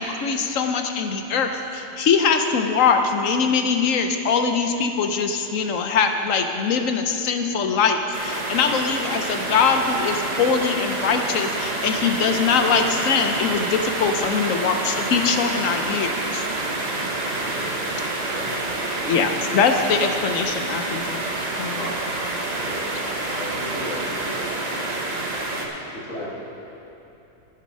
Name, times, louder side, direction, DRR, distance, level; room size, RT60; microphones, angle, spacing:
voice 1, 0.0-16.4 19.0-21.2 21.6-21.8, left 5 dB, 65° left, 6 dB, 0.8 m, -22 dB
sound 1, 8.1-25.7, right 2 dB, 35° right, 0.7 m, -28 dB
voice 2, 17.3-17.7 18.2-18.8 19.9-20.1 21.7-22.0 22.6-24.2 26.1-26.3, left 1 dB, 45° left, -3 dB, 2.1 m, -36 dB
voice 3, 24.3-24.6 25.4-26.3, equal, 15° right, -3 dB, 1.2 m, -41 dB
10.5 x 9.7 x 5.4 m, 3.0 s
omnidirectional pair, 1.9 m